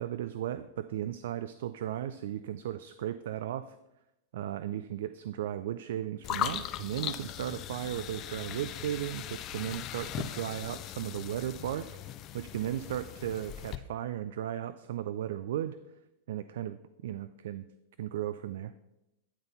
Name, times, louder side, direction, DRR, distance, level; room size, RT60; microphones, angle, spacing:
voice 1, 0.0-3.8 4.3-15.8 16.3-17.7 18.0-18.7, right 11 dB, 70° right, 13 dB, 0.3 m, -36 dB
sound 1, 6.2-13.8, left 11 dB, 40° left, 0.5 m, -39 dB
10.0 x 4.0 x 5.4 m, 0.93 s
hypercardioid pair, 100°, 0 cm